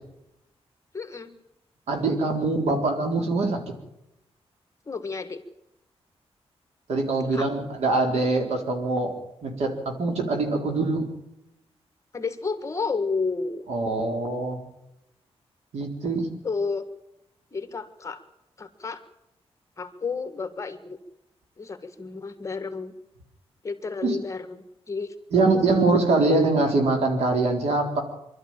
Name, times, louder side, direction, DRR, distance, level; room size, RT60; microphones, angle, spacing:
voice 1, 0.9-1.3 4.8-5.4 7.2-7.5 12.1-13.7 16.4-16.9 17.5-18.2 18.6-19.0 19.8-21.0 21.6-22.9 23.6-25.1, left 4 dB, 30° left, 9 dB, 1.7 m, -31 dB
voice 2, 1.9-3.6 6.9-9.2 9.4-9.7 10.0-11.1 13.7-14.6 15.7-16.3 24.0-24.2 25.3-28.0, right 3 dB, 85° right, 3 dB, 4.0 m, -23 dB
24.0 x 12.5 x 8.9 m, 0.88 s
wide cardioid pair, 140°, 11 cm